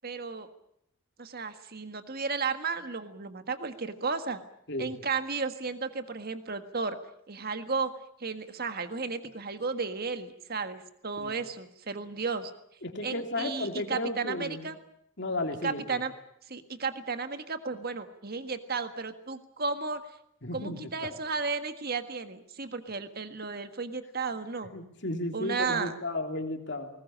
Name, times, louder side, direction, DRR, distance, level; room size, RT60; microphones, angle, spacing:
voice 1, 0.0-0.5 1.2-4.4 4.8-7.0 7.3-7.9 8.2-12.5 13.0-14.8 15.6-16.1 16.5-20.0 20.5-24.7 25.3-25.9, right 4 dB, 50° right, 9 dB, 1.7 m, -34 dB
voice 2, 12.8-14.7 15.2-16.0 20.4-20.9 24.7-26.9, left 2 dB, 60° left, 5 dB, 3.1 m, -34 dB
21.0 x 19.5 x 8.6 m, 0.74 s
head